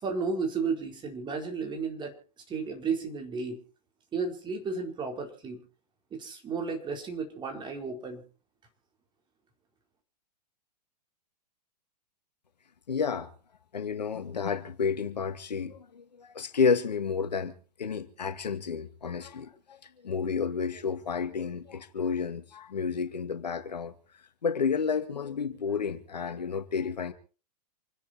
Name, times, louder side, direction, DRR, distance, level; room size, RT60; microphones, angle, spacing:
voice 1, 0.0-2.1 2.5-3.6 4.1-5.6 6.1-8.2, right 5 dB, 20° right, 4.4 m, -33 dB
voice 2, 12.9-13.3 13.7-17.5 17.8-19.8 20.0-23.9 24.4-27.1, left 5 dB, 80° left, 2.1 m, -30 dB
27.5 x 10.5 x 4.5 m
hypercardioid pair, 110°, 21 cm